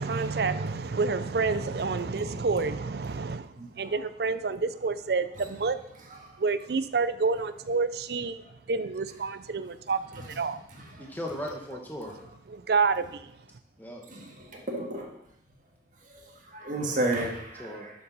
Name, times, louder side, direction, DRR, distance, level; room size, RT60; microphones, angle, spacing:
voice 1, 0.0-5.8 6.4-8.4 8.7-10.6 12.5-13.3, right 4 dB, 60° right, 0.5 m, -28 dB
voice 2, 3.6-3.9 14.1-15.1 16.5-17.9, right 2 dB, 45° right, 1.7 m, -32 dB
voice 3, 11.0-12.1 13.8-14.0 16.8-17.2 17.6-17.9, left 1 dB, 10° left, 1.2 m, -38 dB
11.5 x 7.2 x 4.0 m
head